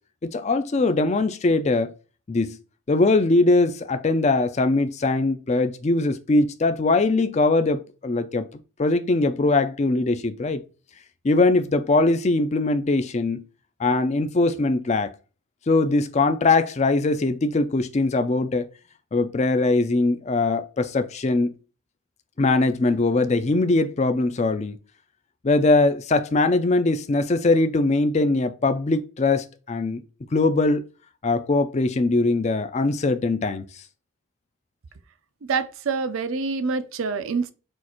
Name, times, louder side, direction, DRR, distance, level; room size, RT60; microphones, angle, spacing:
voice 1, 0.2-1.9 2.3-2.6 2.9-8.5 8.8-10.6 11.2-13.4 13.8-15.1 15.7-18.7 19.1-21.5 22.4-24.8 25.4-30.0 30.3-30.8 31.2-33.6, left 2 dB, 30° left, 0.4 m, -21 dB
voice 2, 35.5-37.5, right 4 dB, 70° right, 0.5 m, -26 dB
6.3 x 2.5 x 2.9 m
head